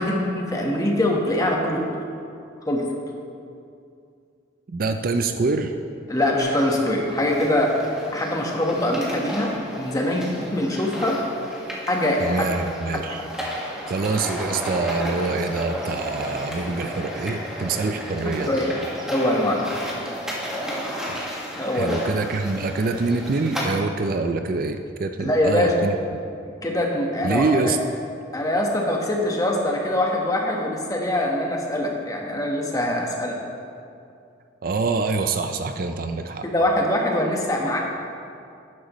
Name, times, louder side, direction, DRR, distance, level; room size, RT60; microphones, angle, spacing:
voice 1, 0.0-1.8 2.7-2.9 6.1-7.8 8.1-11.2 11.9-12.4 18.5-18.7 19.1-19.6 21.6-22.0 25.2-25.7 26.6-27.7 28.3-33.4 36.4-37.8, left 1 dB, 20° left, -1 dB, 1.2 m, -23 dB
voice 2, 4.7-5.7 12.2-13.2 13.9-18.6 21.1-21.2 21.7-26.0 27.2-27.8 34.6-36.4, right 3 dB, 45° right, 7 dB, 0.4 m, -25 dB
sound 1, 6.4-23.6, equal, 5° right, 1.6 m, -33 dB
12.5 x 10.5 x 3.1 m, 2.5 s
head